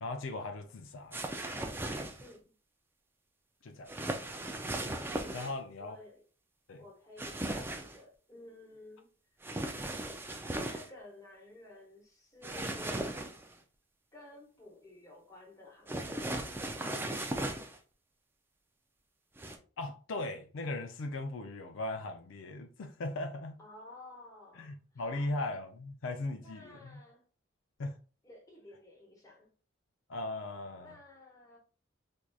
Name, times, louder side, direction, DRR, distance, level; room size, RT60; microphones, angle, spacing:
voice 1, 0.0-1.2 3.6-3.9 5.3-6.0 6.7-6.8 19.8-23.6 24.6-27.0 27.8-28.0 30.1-30.9, left 2 dB, 65° left, 0.4 m, -38 dB
sound 1, 1.1-2.3 3.9-5.5 7.2-8.0 9.4-10.9 12.4-13.5 15.9-17.8 19.4-19.6, right 1 dB, 10° right, 0.3 m, -37 dB
voice 2, 2.2-2.5 5.4-6.2 6.8-9.1 10.6-13.2 14.1-16.5 23.6-25.4 26.4-27.3 28.2-29.5 30.7-31.6, left 1 dB, 15° left, 1.0 m, -53 dB
4.6 x 2.6 x 2.3 m
head